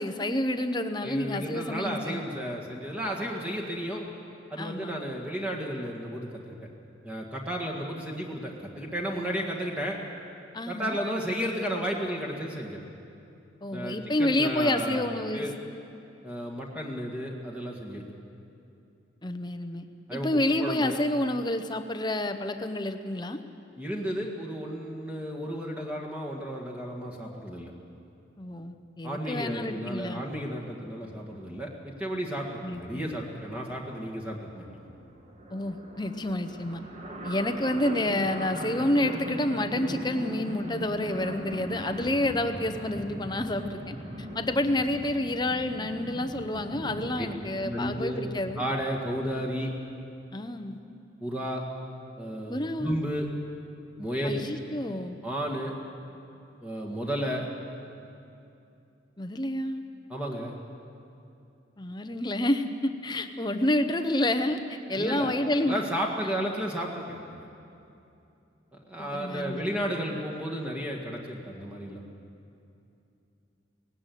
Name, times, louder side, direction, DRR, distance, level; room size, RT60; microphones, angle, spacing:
voice 1, 0.0-2.2 4.6-5.0 10.5-11.0 13.6-15.5 19.2-19.9 20.1-23.4 28.4-30.2 32.6-33.1 35.5-36.8 37.2-48.6 50.3-50.8 52.5-53.0 54.2-55.2 59.2-59.8 61.8-65.8 69.0-69.8, left 1 dB, 20° left, 8 dB, 0.9 m, -29 dB
voice 2, 1.0-4.0 4.5-6.6 7.0-10.0 10.7-12.8 13.7-15.0 15.3-15.5 16.2-18.0 20.1-21.0 23.8-27.7 29.0-34.9 47.2-47.3 47.6-48.2 48.6-49.7 51.2-51.6 52.2-53.3 54.0-54.4 55.2-55.7 56.6-57.5 60.1-60.5 65.0-67.5 68.7-72.0, equal, 5° right, -2 dB, 1.8 m, -33 dB
sound 1, 33.8-49.5, right 1 dB, 35° right, 2.0 m, -39 dB
18.5 x 16.5 x 9.3 m, 2.7 s
head